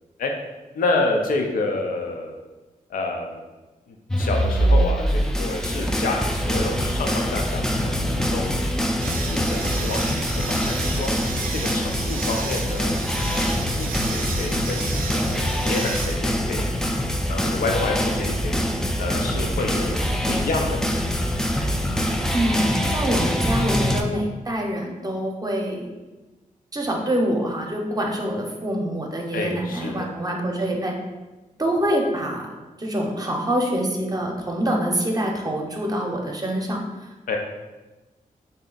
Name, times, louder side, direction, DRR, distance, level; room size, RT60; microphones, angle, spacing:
voice 1, 0.7-2.4 2.9-3.4 3.9-8.5 9.0-11.1 11.5-16.6 17.3-18.6 19.0-20.9 29.3-30.1 37.3-37.4, left 3 dB, 80° left, 2 dB, 0.5 m, -29 dB
sound 1, 4.1-24.0, equal, 5° left, 0.4 m, -24 dB
sound 2, 9.0-16.7, right 5 dB, 85° right, 0.4 m, -34 dB
voice 2, 22.3-25.9 26.7-31.0 31.6-32.5 32.8-36.8, right 1 dB, 25° right, 0 dB, 0.7 m, -25 dB
3.3 x 2.7 x 3.8 m, 1.2 s
cardioid pair, 75°, 14 cm